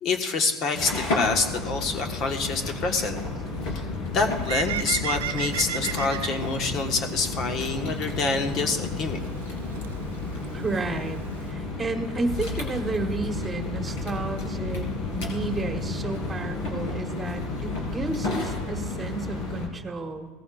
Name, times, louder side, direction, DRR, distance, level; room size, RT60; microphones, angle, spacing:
voice 1, 0.0-3.1 3.6-3.9 4.1-9.2, left 4 dB, 45° left, 5 dB, 1.5 m, -27 dB
sound 1, 0.7-19.7, left 3 dB, 70° left, 3.6 m, -32 dB
Bird, 4.2-11.5, right 10 dB, 85° right, 0.4 m, -36 dB
voice 2, 10.5-11.2 11.5-20.3, right 2 dB, 15° right, 5 dB, 1.5 m, -32 dB
18.0 x 15.0 x 2.6 m, 1.5 s
hypercardioid pair, 100°, 0 cm